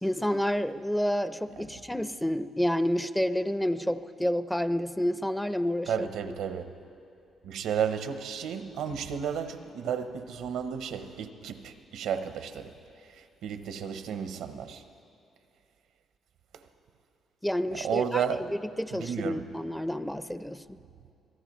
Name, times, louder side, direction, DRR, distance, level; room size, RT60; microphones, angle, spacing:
voice 1, 0.0-6.1 17.4-18.2 18.8-20.6, equal, 5° left, 0.5 m, -29 dB
voice 2, 5.9-6.7 7.4-12.7 13.0-14.8 16.5-16.6 17.7-18.5 18.9-19.6, right 7 dB, 85° right, 0.8 m, -33 dB
26.0 x 17.5 x 3.1 m
cardioid pair, 90°, 0 cm